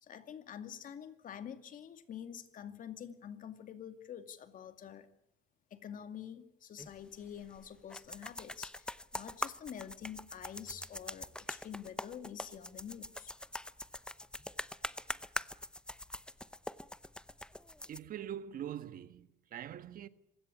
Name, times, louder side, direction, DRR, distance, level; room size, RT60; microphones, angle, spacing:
voice 1, 0.0-5.1 5.7-13.3, left 9 dB, 55° left, 2.4 m, -47 dB
sound 1, 6.8-18.0, left 1 dB, 5° left, 0.8 m, -43 dB
voice 2, 17.9-20.1, right 10 dB, 55° right, 1.4 m, -43 dB
26.5 x 16.5 x 8.5 m
cardioid pair, 110°, 17 cm